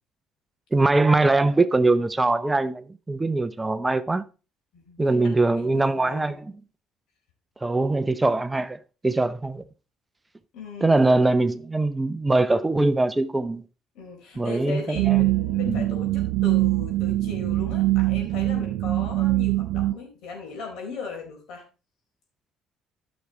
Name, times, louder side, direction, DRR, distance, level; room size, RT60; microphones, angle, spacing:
voice 1, 0.7-4.2 5.0-6.5 7.6-8.8 9.0-9.6 10.8-13.6 14.4-15.3 15.7-15.8, right 2 dB, 15° right, 0.6 m, -22 dB
voice 2, 4.7-6.4 10.5-10.9 13.9-21.6, left 4 dB, 70° left, 4.3 m, -38 dB
sound 1, 14.9-19.9, right 18 dB, 80° right, 0.4 m, -23 dB
10.5 x 6.3 x 4.2 m
supercardioid pair, 85°, 0 cm